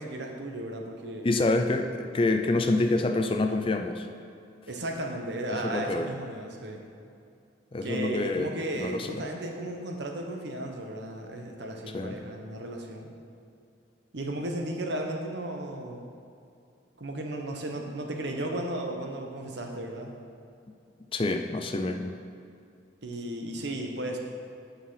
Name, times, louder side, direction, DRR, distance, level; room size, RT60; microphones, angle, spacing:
voice 1, 0.0-1.3 4.7-6.8 7.8-13.1 14.1-16.1 17.0-20.1 23.0-24.2, right 1 dB, 65° right, 2 dB, 1.0 m, -35 dB
voice 2, 1.2-4.1 5.5-6.1 7.7-9.2 11.9-12.2 21.1-22.1, left 2 dB, 30° left, 5 dB, 0.4 m, -27 dB
8.9 x 5.7 x 5.6 m, 2.5 s
head